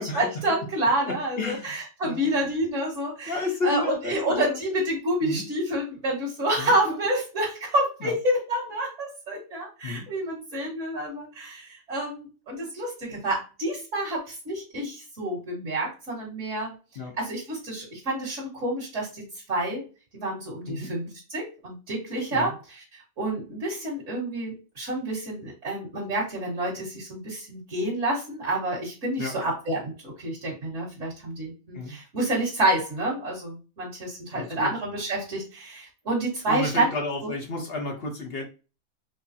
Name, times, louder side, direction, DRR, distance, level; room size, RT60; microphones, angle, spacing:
voice 1, 0.0-3.3 3.6-16.7 17.2-19.8 20.1-36.9 37.2-37.3, right 1 dB, 55° right, -6 dB, 1.9 m, -28 dB
voice 2, 1.0-1.7 2.0-2.5 3.3-4.6 5.2-5.5 6.6-6.7 8.0-8.1 9.8-10.1 16.9-17.1 20.7-20.9 22.3-22.5 29.2-29.3 31.7-31.9 34.3-34.7 36.5-38.4, left 2 dB, 50° left, 2 dB, 1.0 m, -31 dB
5.4 x 2.0 x 2.7 m, 0.32 s
omnidirectional pair, 1.5 m